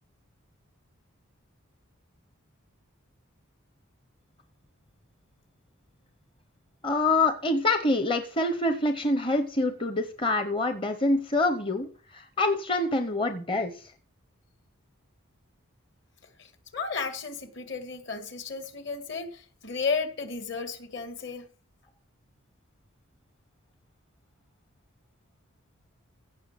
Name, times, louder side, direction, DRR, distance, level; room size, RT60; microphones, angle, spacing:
voice 1, 6.8-13.9, left 2 dB, 25° left, 8 dB, 0.8 m, -26 dB
voice 2, 16.4-21.5, left 5 dB, 55° left, 8 dB, 2.1 m, -33 dB
16.0 x 6.0 x 7.6 m, 0.43 s
head